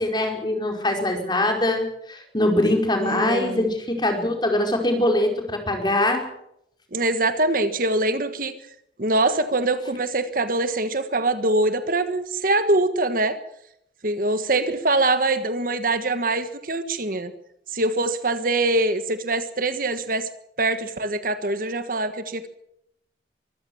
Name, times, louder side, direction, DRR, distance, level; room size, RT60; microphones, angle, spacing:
voice 1, 0.0-6.2, left 1 dB, 25° left, 3 dB, 4.9 m, -23 dB
voice 2, 3.0-3.7 6.9-8.5 9.0-13.4 14.0-17.3 17.7-20.3 20.6-22.5, right 2 dB, 50° right, 10 dB, 1.5 m, -23 dB
24.0 x 15.0 x 7.2 m, 0.76 s
head